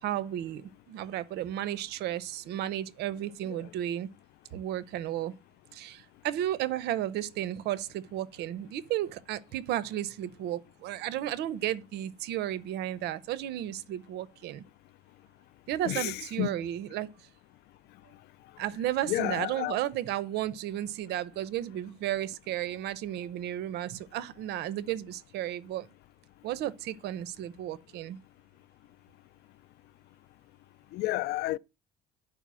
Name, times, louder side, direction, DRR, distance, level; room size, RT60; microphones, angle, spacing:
voice 1, 0.0-4.1 4.5-5.3 5.7-14.6 15.7-17.1 18.6-25.9 26.4-28.2, right 12 dB, 80° right, 0.7 m, -33 dB
voice 2, 15.8-16.5 19.0-19.8 30.9-31.6, left 17 dB, 75° left, 0.4 m, -31 dB
9.9 x 4.8 x 6.1 m
cardioid pair, 110°, 17 cm